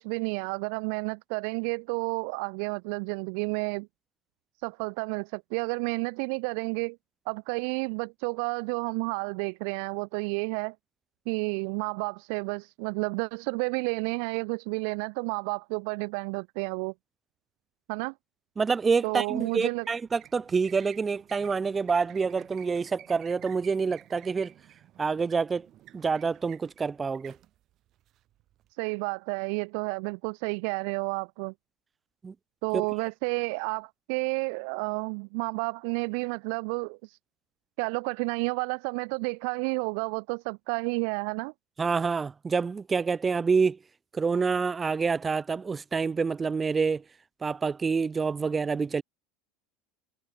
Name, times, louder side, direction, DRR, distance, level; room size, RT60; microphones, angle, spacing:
voice 1, 0.0-3.9 4.6-7.0 7.3-10.7 11.3-16.9 17.9-18.1 19.0-19.9 28.8-31.5 32.6-37.2 37.8-41.5, right 37 dB, 60° right, 0.8 m, -31 dB
voice 2, 18.6-24.5 25.0-25.7 25.9-27.4 32.2-32.3 32.7-32.8 41.8-43.8 44.1-47.0 47.4-49.0, right 5 dB, 15° right, 2.7 m, -27 dB
sound 1, 19.4-28.7, right 13 dB, 35° right, 7.3 m, -53 dB
cardioid pair, 165°, 0 cm